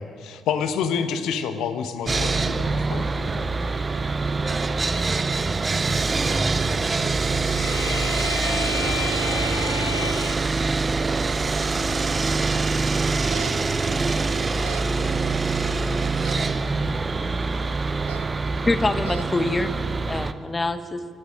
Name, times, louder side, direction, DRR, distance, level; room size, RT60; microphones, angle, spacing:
voice 1, 0.0-3.3, left 7 dB, 65° left, 10 dB, 0.9 m, -28 dB
Sawing, 2.1-20.3, right 3 dB, 30° right, 0.7 m, -24 dB
voice 2, 3.0-6.4, right 1 dB, 10° right, 1 dB, 3.4 m, -44 dB
sound 1, 7.4-10.4, left 4 dB, 90° left, 0.4 m, -32 dB
sound 2, 13.1-13.5 14.4-14.9 16.1-16.5 17.9-18.3 18.8-19.3, right 18 dB, 75° right, 0.3 m, -38 dB
voice 3, 18.6-19.8 20.1-21.0, left 2 dB, 25° left, 11 dB, 0.9 m, -25 dB
24.5 x 8.4 x 6.3 m, 2.3 s
figure-of-eight pair, 45°, 0 cm